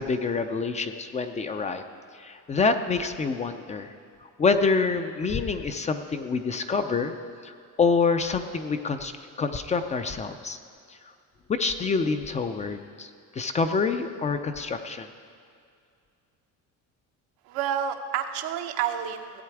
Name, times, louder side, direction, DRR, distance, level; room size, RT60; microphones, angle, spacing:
voice 1, 0.0-1.8 2.2-3.9 4.4-7.1 7.4-9.1 9.4-10.6 11.5-15.1, left 4 dB, 20° left, 8 dB, 0.4 m, -26 dB
voice 2, 17.5-19.4, right 9 dB, 90° right, 6 dB, 0.9 m, -29 dB
16.5 x 8.4 x 4.7 m, 2.3 s
cardioid pair, 150°, 34 cm